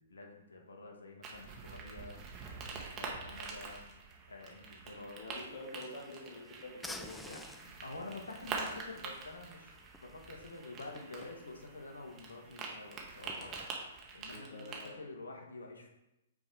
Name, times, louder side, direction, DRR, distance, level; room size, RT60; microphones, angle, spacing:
voice 1, 0.0-3.8 4.3-5.2 7.3-9.7 10.0-15.9, left 2 dB, 80° left, 1 dB, 1.3 m, -48 dB
sound 1, 1.2-14.9, right 4 dB, 25° right, 1.3 m, -46 dB
voice 2, 5.1-7.4 14.3-15.0, left 2 dB, 45° left, -2 dB, 2.2 m, -47 dB
sound 2, 5.4-13.7, left 2 dB, 5° left, 0.4 m, -54 dB
6.1 x 3.8 x 4.7 m, 0.91 s
hypercardioid pair, 120°, 0 cm